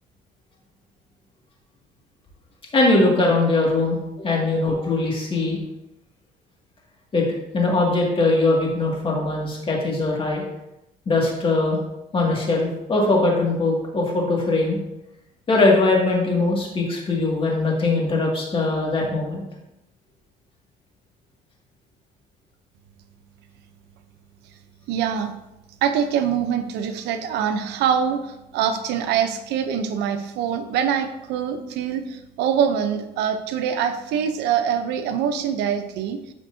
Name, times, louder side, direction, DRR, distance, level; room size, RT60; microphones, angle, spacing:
voice 1, 2.7-5.6 7.1-7.2 7.5-10.4 11.1-11.8 12.1-14.8 15.5-19.4, left 2 dB, 30° left, -2 dB, 2.2 m, -21 dB
voice 2, 24.9-25.3 25.8-36.2, right 8 dB, 85° right, 8 dB, 0.7 m, -24 dB
12.0 x 4.5 x 2.7 m, 0.92 s
cardioid pair, 110°, 17 cm